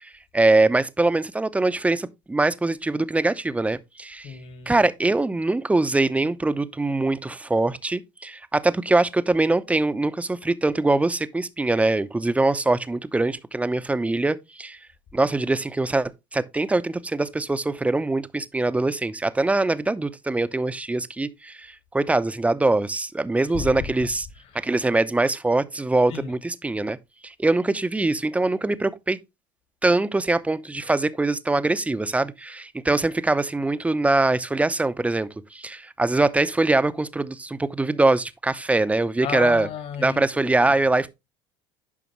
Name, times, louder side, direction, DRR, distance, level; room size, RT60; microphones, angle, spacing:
voice 1, 0.0-4.4 4.7-14.8 15.1-24.3 24.6-27.0 27.2-29.2 29.8-39.7 40.0-41.1, right 2 dB, 10° right, 0.8 m, -23 dB
voice 2, 4.2-4.8 23.5-24.1 24.4-24.7 26.1-26.3 39.2-40.7, left 7 dB, 55° left, 2.3 m, -34 dB
11.0 x 5.0 x 3.1 m
hypercardioid pair, 85°, 12 cm